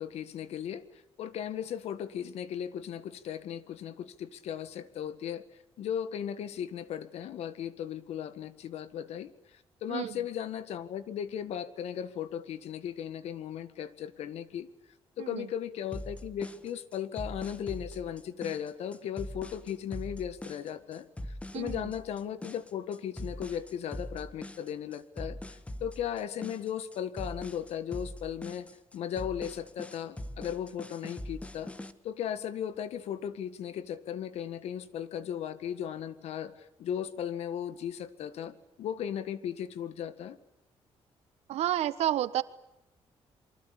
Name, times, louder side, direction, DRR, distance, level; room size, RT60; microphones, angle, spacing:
voice 1, 0.0-5.4 5.8-14.7 15.2-21.1 21.5-31.7 32.0-40.4, left 9 dB, 80° left, 13 dB, 1.9 m, -37 dB
sound 1, 15.9-31.9, left 1 dB, 10° left, 1.6 m, -42 dB
voice 2, 21.5-21.9 41.5-42.4, right 12 dB, 85° right, 14 dB, 1.3 m, -30 dB
28.0 x 24.0 x 8.5 m, 0.85 s
cardioid pair, 115°, 11 cm